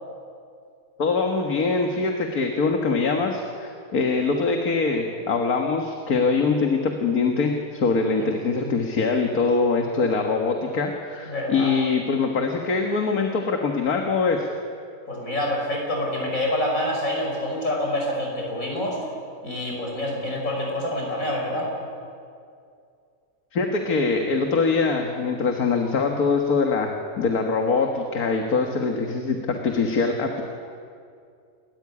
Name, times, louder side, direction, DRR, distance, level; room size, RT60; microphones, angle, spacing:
voice 1, 1.0-14.5 23.5-30.4, left 4 dB, 75° left, 3 dB, 2.1 m, -23 dB
voice 2, 11.3-11.7 15.1-19.1 19.4-21.7, left 1 dB, 60° left, -1 dB, 6.1 m, -27 dB
29.0 x 13.5 x 9.7 m, 2.4 s
omnidirectional pair, 1.6 m